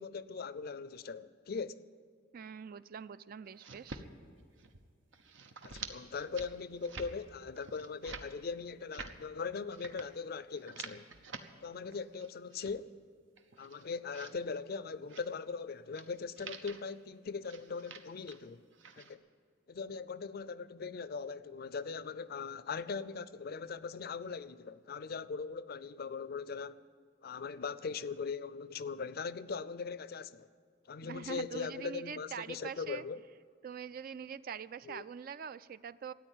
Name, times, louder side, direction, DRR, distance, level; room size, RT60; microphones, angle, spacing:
voice 1, 0.0-1.8 5.6-11.1 11.6-12.9 13.6-18.6 19.0-19.2 19.7-26.8 27.2-30.5 30.9-33.2 34.8-35.0, left 5 dB, 55° left, 0.5 m, -40 dB
voice 2, 2.3-4.0 31.0-33.0 33.6-36.1, right 7 dB, 50° right, 0.3 m, -44 dB
sound 1, 3.5-4.0 4.4-4.8 5.1-5.9 6.2-6.5 6.8-7.1 7.6-8.3 8.7-9.1 9.7-10.1 10.5-11.4 11.9-12.7 13.3-14.3 15.0-15.3 15.9-16.1 16.4-16.8 17.4-18.4 18.7-19.1, right 5 dB, 85° right, 1.0 m, -48 dB
13.5 x 9.4 x 9.0 m
head